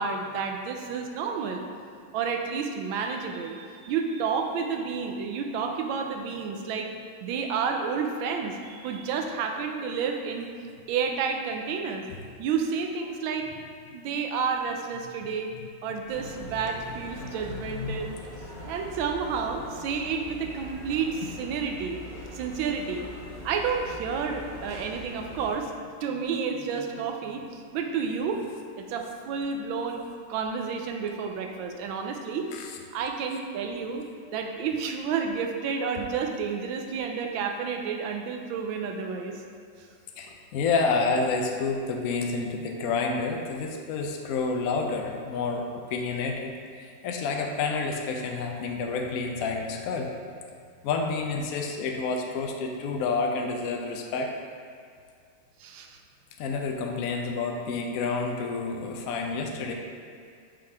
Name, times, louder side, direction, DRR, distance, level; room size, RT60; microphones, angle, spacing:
voice 1, 0.0-1.6 2.1-6.9 7.2-10.5 10.9-12.0 12.4-13.5 13.9-15.5 15.8-18.2 18.7-22.0 22.3-23.1 23.4-25.7 26.0-28.4 28.8-30.0 30.3-32.5 32.9-34.0 34.3-39.4 55.6-56.0, right 5 dB, 80° right, 4 dB, 1.3 m, -30 dB
sound 1, 16.1-25.6, equal, 25° left, 1.4 m, -42 dB
voice 2, 17.7-18.1 18.5-18.6 32.5-32.7 40.2-50.1 50.8-54.3 56.4-59.7, left 4 dB, 80° left, 2 dB, 0.7 m, -29 dB
5.6 x 5.0 x 3.4 m, 2.2 s
omnidirectional pair, 2.2 m